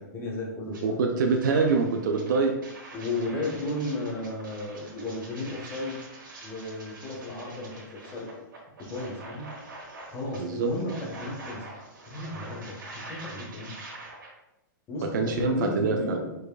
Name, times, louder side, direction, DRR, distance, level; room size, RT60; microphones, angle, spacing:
voice 1, 0.0-1.0 2.9-6.0 6.4-8.3 8.8-9.5 10.1-11.7 12.1-13.7 14.9-16.3, left 2 dB, 20° left, -3 dB, 1.3 m, -34 dB
sound 1, 0.7-0.8 1.2-14.3, right 2 dB, 90° right, 1.5 m, -45 dB
voice 2, 0.8-2.5 10.4-10.7 15.1-16.3, right 4 dB, 70° right, 2 dB, 0.6 m, -25 dB
4.8 x 4.5 x 2.3 m, 0.91 s
hypercardioid pair, 130°, 11 cm